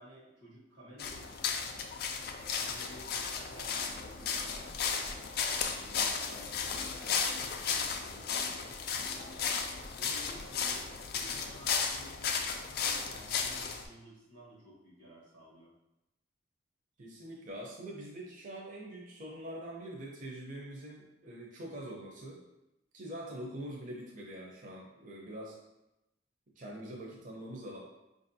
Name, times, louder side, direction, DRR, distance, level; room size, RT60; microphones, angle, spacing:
voice 1, 0.0-1.7 2.6-5.1 5.6-7.4 7.6-9.5 10.0-12.3 12.8-15.7, equal, 90° right, -5 dB, 1.2 m, -54 dB
sound 1, 1.0-13.9, left 6 dB, 50° left, 0.3 m, -34 dB
sound 2, 3.6-12.0, left 1 dB, 5° right, 0.5 m, -54 dB
voice 2, 17.0-22.4 22.9-25.6 26.6-27.8, right 1 dB, 40° right, -3 dB, 0.6 m, -44 dB
4.8 x 2.6 x 2.7 m, 0.93 s
head